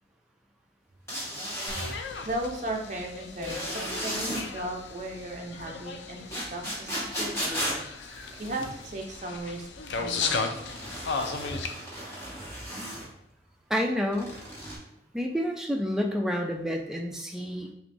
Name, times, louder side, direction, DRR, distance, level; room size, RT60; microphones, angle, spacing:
sound 1, 1.1-1.9 3.4-4.4 6.3-8.9 10.5-13.1 14.1-14.8, equal, 15° left, 1.1 m, -35 dB
sound 2, 1.7-11.7, left 4 dB, 85° left, 0.4 m, -36 dB
voice 1, 2.2-7.8 8.4-9.7 10.0-10.5, right 1 dB, 40° right, 0 dB, 0.7 m, -36 dB
voice 2, 13.7-14.3 15.1-17.7, equal, 5° right, 1 dB, 0.4 m, -29 dB
5.9 x 2.2 x 2.6 m, 0.85 s
head